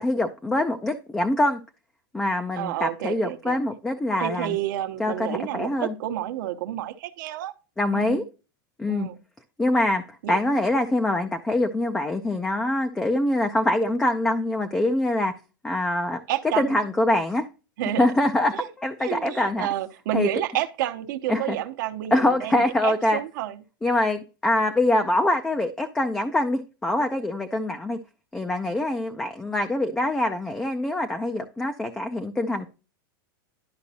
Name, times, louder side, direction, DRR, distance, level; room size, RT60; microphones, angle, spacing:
voice 1, 0.0-1.6 2.1-4.6 5.0-5.9 7.8-8.2 8.8-9.1 9.6-15.3 15.6-16.2 16.6-17.5 18.0-19.7 20.1-20.3 21.3-21.6 22.1-23.2 23.8-28.0 28.3-32.7, left 1 dB, 5° left, 0.5 m, -24 dB
voice 2, 2.6-3.6 4.2-7.5 7.9-8.2 8.9-9.2 10.2-10.4 16.3-16.8 17.8-18.1 18.5-18.7 19.0-23.6, right 12 dB, 60° right, 0.9 m, -30 dB
11.5 x 5.1 x 2.8 m
supercardioid pair, 155°, 12 cm